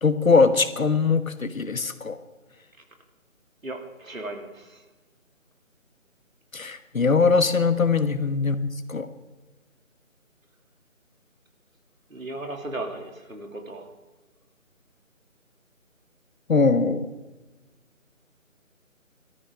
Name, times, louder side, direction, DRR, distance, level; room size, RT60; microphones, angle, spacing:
voice 1, 0.0-2.2 6.5-9.1 16.5-17.1, left 4 dB, 75° left, 11 dB, 1.4 m, -21 dB
voice 2, 3.6-4.9 12.1-13.9, right 2 dB, 75° right, 3 dB, 3.0 m, -36 dB
18.5 x 13.5 x 3.7 m, 1.1 s
figure-of-eight pair, 175°, 41 cm